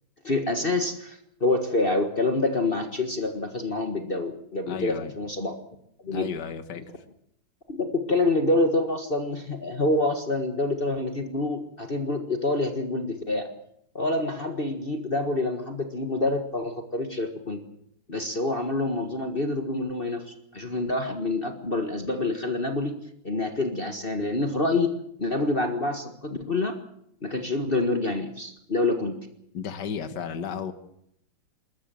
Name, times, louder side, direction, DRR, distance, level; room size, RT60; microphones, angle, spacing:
voice 1, 0.2-5.5 6.0-6.3 7.7-13.5 14.0-17.6 18.1-22.9 23.2-24.9 25.2-26.8 27.2-29.2, left 2 dB, 30° left, 4 dB, 1.7 m, -27 dB
voice 2, 4.7-5.1 6.1-6.8 29.5-30.7, left 7 dB, 60° left, 10 dB, 2.0 m, -33 dB
27.5 x 14.0 x 7.7 m, 0.75 s
omnidirectional pair, 2.2 m